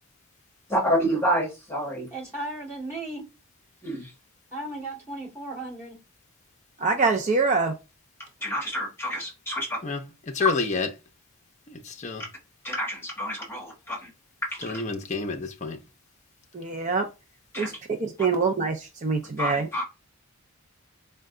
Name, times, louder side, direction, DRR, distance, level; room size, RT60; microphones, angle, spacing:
voice 1, 0.7-2.1 3.8-4.1 8.4-9.8 10.4-10.5 12.6-14.1 14.5-14.8 17.5-17.8 19.4-19.8, equal, 10° left, 1.3 m, -28 dB
voice 2, 2.1-3.3 4.5-6.0, right 2 dB, 10° right, 2.1 m, -35 dB
voice 3, 6.8-7.7 16.5-17.1 17.6-17.7 18.0-19.7, right 4 dB, 35° right, 0.4 m, -24 dB
voice 4, 10.3-10.9 11.7-12.2 14.6-15.8, left 4 dB, 35° left, 0.6 m, -29 dB
4.4 x 2.2 x 3.7 m
head